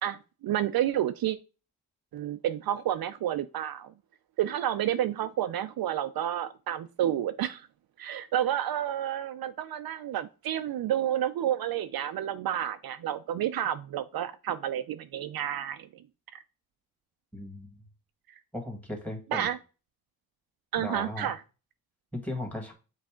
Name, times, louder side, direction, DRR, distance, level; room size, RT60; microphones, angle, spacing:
voice 1, 0.0-1.4 2.1-3.9 4.4-7.7 8.0-16.0 16.3-16.4 19.3-19.6 20.7-21.4, right 11 dB, 65° right, 10 dB, 0.5 m, -30 dB
voice 2, 17.3-17.8 18.5-19.5 20.8-21.3 22.1-22.7, left 1 dB, 5° left, 4 dB, 1.7 m, -36 dB
7.4 x 4.0 x 3.6 m, 0.33 s
cardioid pair, 105°, 39 cm